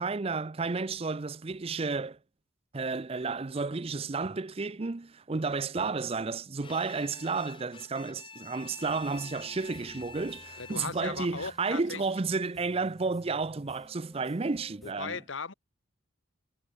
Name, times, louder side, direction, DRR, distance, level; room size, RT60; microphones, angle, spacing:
voice 1, 0.0-2.2 2.7-15.2, right 4 dB, 30° right, 0.5 m, -32 dB
Bowed string instrument, 6.6-11.2, left 5 dB, 25° left, 4.5 m, -48 dB
sound 1, 8.8-14.9, equal, ahead, 2.8 m, -55 dB
voice 2, 10.6-12.0 14.8-15.5, left 4 dB, 70° left, 1.4 m, -37 dB
head